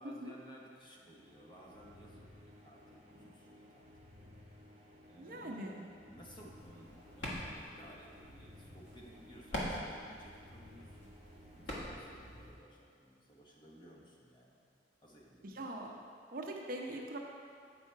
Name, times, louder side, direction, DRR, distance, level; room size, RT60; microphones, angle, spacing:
voice 1, 0.0-4.4 5.1-14.6 15.0-15.6, equal, 25° left, -3 dB, 1.0 m, -58 dB
sound 1, 0.8-12.7, left 1 dB, 35° right, 1.1 m, -58 dB
voice 2, 5.2-5.9 15.4-15.9 16.3-17.2, right 1 dB, 50° right, 0 dB, 0.7 m, -42 dB
sound 2, 6.6-12.5, equal, 85° left, 1.5 m, -45 dB
8.5 x 4.7 x 4.5 m, 2.3 s
head